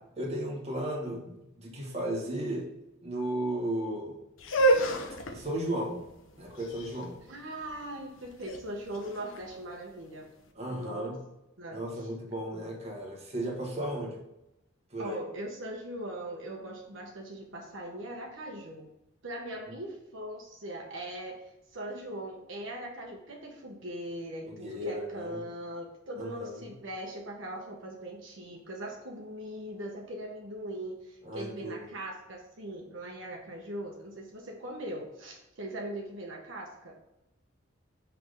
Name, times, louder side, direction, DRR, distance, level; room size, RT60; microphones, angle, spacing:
voice 1, 0.2-2.7 3.0-4.2 5.3-6.0 6.4-7.2 10.5-11.2 11.7-14.2 14.9-15.2 24.5-25.4 26.2-26.6 31.2-31.9, right 1 dB, 30° right, -1 dB, 1.4 m, -35 dB
sound 1, 4.4-10.3, right 1 dB, 85° left, 0.8 m, -30 dB
voice 2, 7.3-10.3 10.7-11.1 11.6-11.8 15.0-18.9 19.2-37.0, right 1 dB, 70° right, 0 dB, 0.9 m, -40 dB
5.8 x 3.4 x 5.1 m, 0.91 s
head